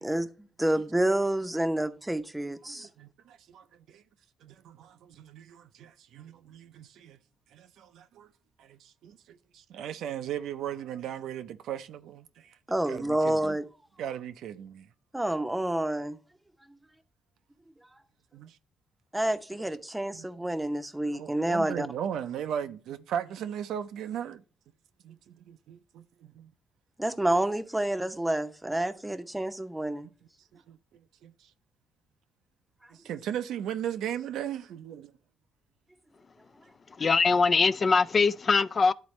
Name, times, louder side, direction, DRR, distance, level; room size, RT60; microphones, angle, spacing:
voice 1, 0.0-2.9 12.7-13.6 15.1-16.2 19.1-21.9 27.0-30.1, right 1 dB, 10° right, 0.7 m, -29 dB
voice 2, 2.6-4.0 4.4-7.2 7.5-8.3 8.6-12.6 12.9-13.6 14.0-14.9 18.3-18.6 20.1-20.2 21.1-24.4 25.0-26.5 30.5-30.8 31.2-31.3 33.0-35.1, right 9 dB, 80° right, 0.5 m, -37 dB
voice 3, 37.0-38.9, left 4 dB, 40° left, 0.3 m, -22 dB
11.5 x 4.0 x 3.1 m
cardioid pair, 90°, 0 cm